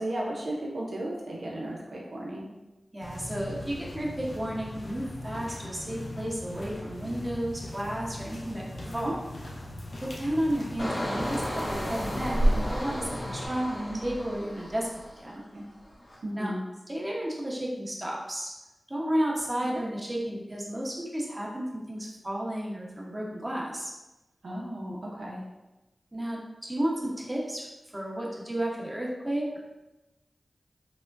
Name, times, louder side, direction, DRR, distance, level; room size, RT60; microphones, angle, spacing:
voice 1, 0.0-2.5 8.8-9.1 13.7-14.0 15.5-15.6 16.2-16.6 24.4-25.4, right 1 dB, 85° right, -3 dB, 0.6 m, -34 dB
voice 2, 2.9-9.2 10.0-14.9 15.2-15.4 16.3-16.5 16.9-18.5 18.9-23.9 26.1-27.7 27.9-29.6, right 1 dB, 25° right, -4 dB, 0.9 m, -32 dB
sound 1, 3.0-13.5, equal, 80° left, 0.5 m, -34 dB
Engine, 10.8-15.4 15.8-16.2, equal, 65° left, 1.0 m, -35 dB
4.8 x 2.1 x 2.5 m, 1.0 s
cardioid pair, 50°, 0 cm